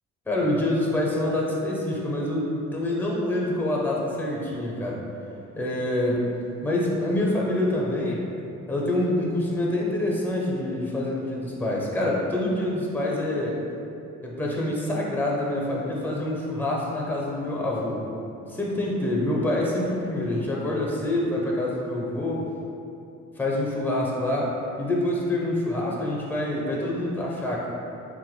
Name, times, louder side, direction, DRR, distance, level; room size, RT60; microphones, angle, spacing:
voice 1, 0.3-5.0 5.6-6.3 6.6-8.2 8.7-13.6 14.2-18.0 18.5-22.5 23.4-27.7, left 1 dB, 5° left, -3 dB, 0.6 m, -26 dB
3.4 x 2.2 x 3.1 m, 2.7 s
cardioid pair, 90°, 30 cm